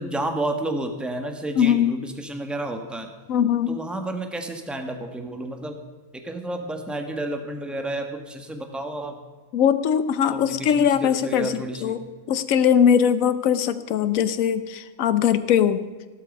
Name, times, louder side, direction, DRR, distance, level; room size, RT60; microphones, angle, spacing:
voice 1, 0.0-3.1 3.7-5.8 6.2-9.1 10.3-12.0, right 1 dB, ahead, 4 dB, 1.3 m, -31 dB
voice 2, 1.6-1.9 3.3-3.8 9.5-11.5 11.8-12.0 12.3-15.8, left 8 dB, 75° left, 12 dB, 1.2 m, -20 dB
15.0 x 12.5 x 5.3 m, 1.3 s
omnidirectional pair, 1.5 m